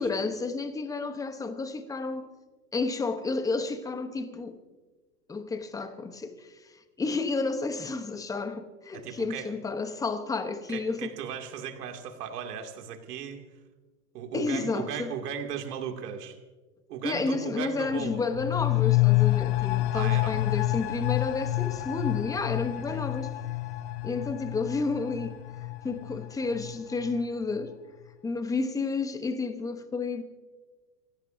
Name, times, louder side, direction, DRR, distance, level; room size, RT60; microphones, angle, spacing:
voice 1, 0.0-2.3 2.7-4.6 5.3-6.5 7.0-11.2 14.3-15.1 17.0-23.3 24.0-25.4 25.8-27.7 28.2-30.2, left 3 dB, 5° left, 0.8 m, -31 dB
voice 2, 8.9-9.5 10.7-13.4 14.1-16.4 16.9-18.2 19.9-20.4 22.8-23.0, right 8 dB, 70° right, 2.5 m, -37 dB
sound 1, 17.8-27.3 27.6-27.7, left 18 dB, 45° left, 0.6 m, -28 dB
27.0 x 16.5 x 2.6 m
hypercardioid pair, 130°, 49 cm